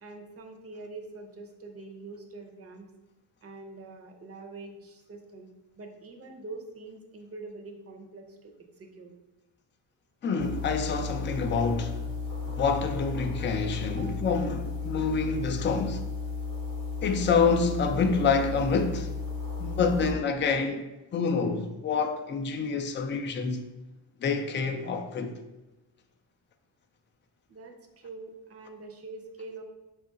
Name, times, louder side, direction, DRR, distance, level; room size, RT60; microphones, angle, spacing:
voice 1, 0.0-2.9 3.4-5.5 5.8-9.1 13.9-14.1 27.5-29.6, right 3 dB, 30° right, 0.7 m, -44 dB
voice 2, 10.2-12.0 12.6-16.0 17.0-19.1 19.6-20.9 21.1-23.7 24.2-25.3, left 5 dB, 25° left, 0.3 m, -27 dB
sound 1, 10.4-20.1, left 4 dB, 45° left, 0.9 m, -34 dB
4.6 x 2.5 x 3.8 m
cardioid pair, 90°, 48 cm